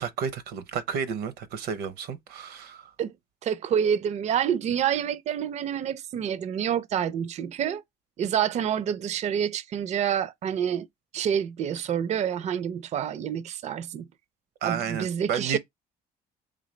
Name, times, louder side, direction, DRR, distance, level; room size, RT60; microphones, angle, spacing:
voice 1, 0.0-2.9 14.6-15.6, right 7 dB, 75° right, 0.7 m, -31 dB
voice 2, 3.4-7.8 8.2-10.9 11.1-14.0 14.6-15.6, right 9 dB, 40° right, 0.4 m, -27 dB
4.0 x 3.3 x 3.1 m
cardioid pair, 110°, 17 cm